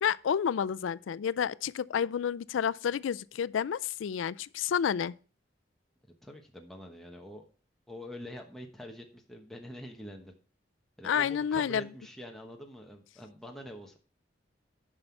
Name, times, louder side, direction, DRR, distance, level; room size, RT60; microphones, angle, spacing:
voice 1, 0.0-5.1 11.0-11.9, left 8 dB, 80° left, 0.4 m, -30 dB
voice 2, 6.2-7.4 7.9-10.3 11.0-14.0, equal, ahead, 1.0 m, -45 dB
9.8 x 5.6 x 4.4 m
head